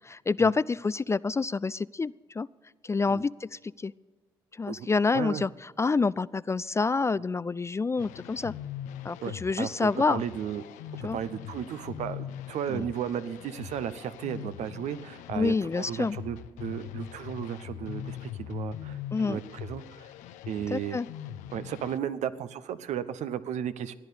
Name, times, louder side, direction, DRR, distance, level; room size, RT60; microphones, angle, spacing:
voice 1, 0.1-2.5 2.8-3.9 4.6-5.5 5.8-8.5 9.0-10.2 11.0-11.2 12.7-12.9 15.3-16.2 19.1-19.4 20.7-21.1, left 4 dB, 20° left, 20 dB, 0.3 m, -27 dB
voice 2, 5.1-5.4 7.1-7.2 9.2-10.6 11.1-19.0 19.2-20.1 20.5-21.0 21.5-23.9, right 9 dB, 65° right, 13 dB, 0.8 m, -34 dB
sound 1, 8.0-22.0, left 11 dB, 75° left, 0.7 m, -41 dB
15.0 x 10.5 x 6.9 m, 1.4 s
hypercardioid pair, 50°, 13 cm